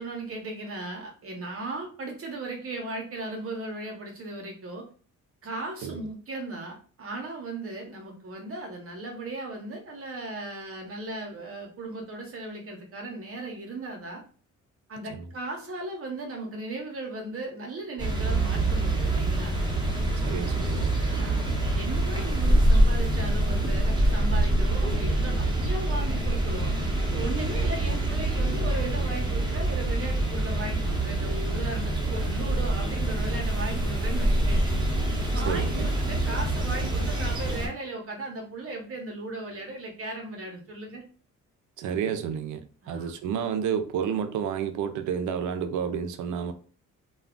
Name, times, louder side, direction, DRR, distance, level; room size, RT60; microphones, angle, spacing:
voice 1, 0.0-4.8 5.4-14.2 14.9-19.6 21.1-34.8 35.3-41.0 42.8-43.1, right 2 dB, 50° right, 0.8 m, -37 dB
sound 1, 18.0-37.7, right 1 dB, 15° right, 0.9 m, -25 dB
voice 2, 20.2-20.9 27.8-28.0 35.5-36.0 41.8-46.5, right 7 dB, 75° right, 0.5 m, -30 dB
2.3 x 2.2 x 3.5 m
cardioid pair, 90°, 30 cm